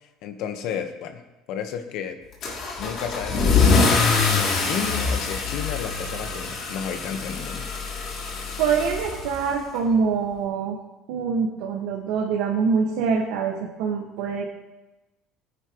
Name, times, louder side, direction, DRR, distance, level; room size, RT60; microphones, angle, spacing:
voice 1, 0.2-1.2 1.5-2.2 2.8-3.9 4.2-7.7, left 7 dB, 55° left, 6 dB, 1.2 m, -32 dB
Car / Engine starting / Accelerating revving vroom, 2.4-9.8, left 4 dB, 40° left, 2.9 m, -24 dB
voice 2, 8.6-10.8 11.1-14.5, right 5 dB, 75° right, -2 dB, 1.6 m, -24 dB
18.5 x 10.0 x 3.1 m, 1.0 s
cardioid pair, 180°, 0 cm